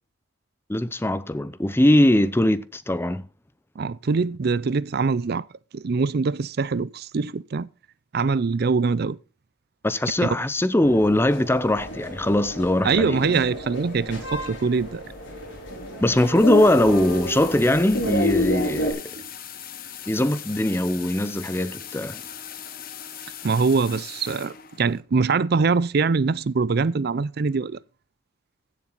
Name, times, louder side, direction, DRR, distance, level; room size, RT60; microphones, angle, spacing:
voice 1, 0.7-3.2 9.8-13.2 16.0-19.1 20.1-22.2, left 1 dB, 10° left, 0.6 m, -21 dB
voice 2, 3.8-5.5 5.7-7.7 8.1-9.2 10.2-10.3 12.8-15.0 23.4-27.8, right 4 dB, 50° right, 0.5 m, -23 dB
sound 1, 10.8-18.9, left 1 dB, 65° left, 5.6 m, -30 dB
sound 2, 13.2-25.0, left 9 dB, 45° left, 1.3 m, -41 dB
16.0 x 7.5 x 4.0 m
head